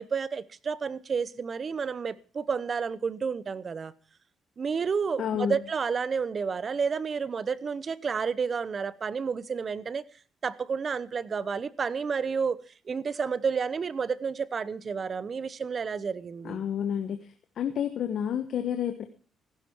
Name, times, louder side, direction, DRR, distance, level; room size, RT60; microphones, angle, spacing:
voice 1, 0.0-3.9 4.6-10.0 10.4-12.6 12.9-16.6, right 5 dB, 45° right, 0.9 m, -30 dB
voice 2, 5.2-5.6 16.4-17.3 17.6-19.0, left 9 dB, 65° left, 1.3 m, -30 dB
15.5 x 12.5 x 4.6 m
cardioid pair, 90°, 0 cm